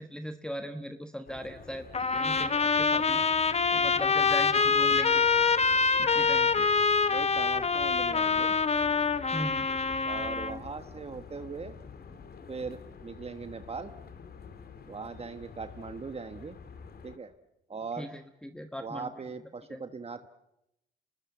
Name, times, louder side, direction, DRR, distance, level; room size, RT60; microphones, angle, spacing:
voice 1, 0.0-3.2 3.7-5.2 6.0-6.7 9.3-9.7 18.0-19.1 19.7-19.8, equal, 5° left, 7 dB, 1.2 m, -39 dB
sound 1, 1.3-17.2, left 5 dB, 50° left, 2.5 m, -48 dB
Trumpet, 1.9-10.6, left 5 dB, 30° left, 1.2 m, -25 dB
voice 2, 7.1-8.6 10.0-11.8 12.5-13.9 14.9-16.5 17.0-17.3 17.7-18.1 18.8-20.3, right 4 dB, 30° right, 9 dB, 1.2 m, -40 dB
27.0 x 20.0 x 8.3 m, 0.86 s
cardioid pair, 90°, 20 cm